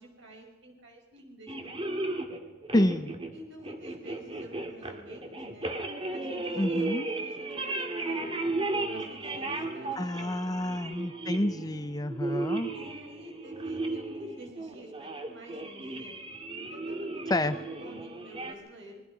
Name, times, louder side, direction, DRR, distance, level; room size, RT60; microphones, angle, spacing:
voice 1, 0.0-1.9 3.3-5.7 6.1-8.4 8.9-10.6 12.7-16.2 16.7-19.0, equal, 60° right, 1 dB, 5.5 m, -49 dB
sound 1, 1.5-18.5, right 2 dB, 25° right, 2.1 m, -35 dB
voice 2, 2.7-3.2 6.6-7.1 10.0-12.7 17.3-17.6, left 1 dB, 20° left, 11 dB, 0.7 m, -28 dB
26.5 x 21.5 x 5.1 m, 1.2 s
head